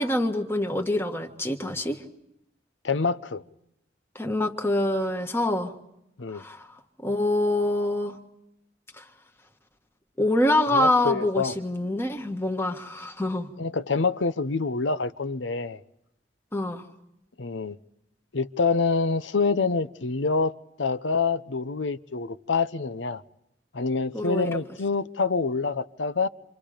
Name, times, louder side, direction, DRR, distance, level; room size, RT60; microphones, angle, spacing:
voice 1, 0.0-2.0 4.1-5.7 6.3-6.7 7.0-8.2 9.0-9.1 10.2-13.5 16.5-16.8 24.1-24.5, left 1 dB, 15° left, 1.6 m, -25 dB
voice 2, 2.8-3.4 6.2-6.4 10.7-11.6 13.6-15.8 17.4-17.8 18.3-20.5 20.8-23.2 23.7-26.3, left 4 dB, 80° left, 0.8 m, -26 dB
28.5 x 27.0 x 5.1 m
head